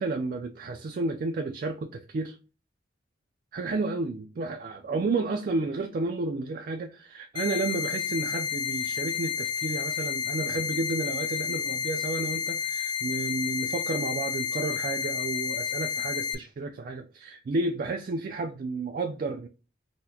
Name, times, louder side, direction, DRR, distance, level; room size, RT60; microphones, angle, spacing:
voice 1, 0.0-2.4 3.5-19.5, right 3 dB, 50° right, 0.3 m, -31 dB
sound 1, 7.4-16.4, left 7 dB, 25° left, 0.3 m, -31 dB
4.0 x 2.1 x 2.7 m
head